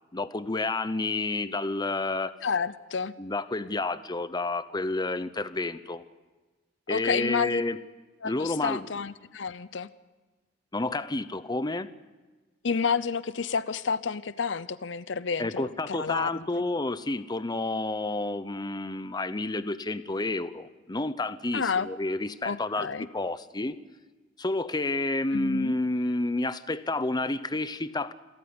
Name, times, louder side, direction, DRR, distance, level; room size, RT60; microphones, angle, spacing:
voice 1, 0.1-2.3 3.2-6.0 6.9-7.8 8.2-8.9 10.7-11.9 15.4-23.8 24.4-28.1, left 2 dB, 25° left, 13 dB, 0.8 m, -30 dB
voice 2, 2.4-3.1 6.9-7.6 8.2-9.9 12.6-16.6 21.5-21.9 22.4-23.1 25.3-25.8, left 5 dB, 80° left, 16 dB, 0.7 m, -30 dB
27.5 x 14.0 x 9.7 m, 1.2 s
head